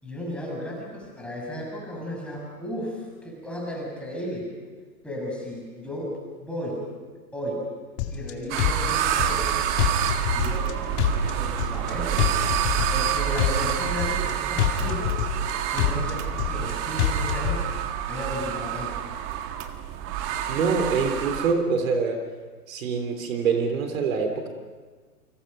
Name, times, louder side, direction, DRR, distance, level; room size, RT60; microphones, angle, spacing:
voice 1, 0.0-4.5 5.0-6.1 6.3-6.8 7.3-7.6 8.1-9.6 10.3-11.0 11.3-12.3 12.9-15.2 15.7-17.7 18.1-19.0, equal, ahead, -2 dB, 6.7 m, -34 dB
sound 1, 8.0-8.3 8.6-9.5 9.8-10.7 11.0-11.9 12.2-13.1 13.4-14.3 14.6-15.5 15.8-16.7 17.0-17.6, left 13 dB, 35° left, 2.4 m, -25 dB
sound 2, 8.5-21.5, right 10 dB, 25° right, 1.7 m, -28 dB
voice 2, 20.5-22.2 22.7-24.5, right 5 dB, 55° right, 5 dB, 3.5 m, -25 dB
29.5 x 25.5 x 5.5 m, 1.5 s
hypercardioid pair, 135°, 47 cm